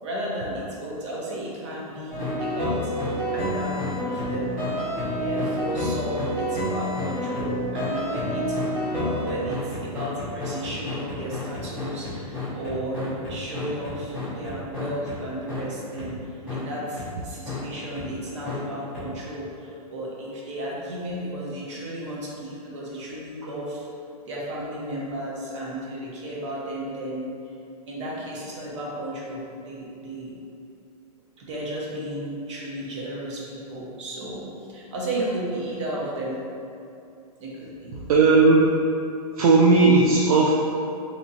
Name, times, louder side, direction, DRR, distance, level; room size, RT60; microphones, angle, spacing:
voice 1, 0.0-2.9 3.3-4.6 5.2-8.6 8.9-23.9 24.2-27.3 27.9-30.4 31.4-36.4 37.4-37.9, right 1 dB, 50° right, -5 dB, 0.8 m, -33 dB
sound 1, 2.1-15.2 15.5-15.6 16.0-16.1 16.5-16.6 17.0-17.1 17.5-17.6 18.0-18.1 18.4-18.6 18.9-19.0, left 1 dB, 10° right, 0.7 m, -29 dB
voice 2, 38.1-38.7 39.4-40.5, right 3 dB, 65° right, -3 dB, 0.4 m, -16 dB
3.1 x 2.9 x 2.7 m, 2.6 s
hypercardioid pair, 175°, 20 cm